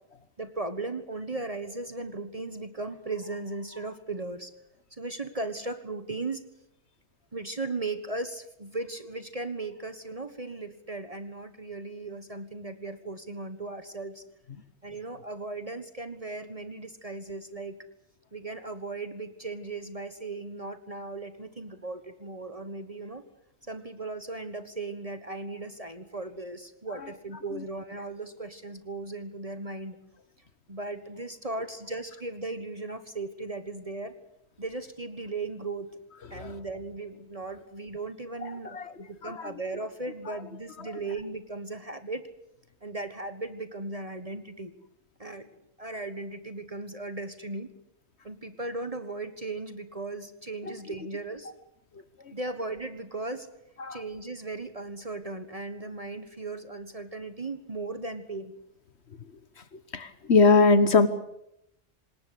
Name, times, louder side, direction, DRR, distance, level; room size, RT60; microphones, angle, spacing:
voice 1, 0.4-4.5 5.0-6.4 7.3-14.2 14.8-17.8 18.3-23.2 23.7-30.0 30.7-34.1 34.6-35.9 36.3-42.2 42.8-44.7 45.2-45.5 45.8-47.7 48.2-51.5 52.3-53.5 53.9-58.5, right 3 dB, 35° right, 10 dB, 1.5 m, -37 dB
voice 2, 38.4-38.9 39.2-39.5 40.9-41.0 50.6-50.8 53.8-54.0 59.9-61.1, left 4 dB, 70° left, 12 dB, 1.5 m, -22 dB
26.5 x 20.0 x 8.4 m, 0.79 s
omnidirectional pair, 1.1 m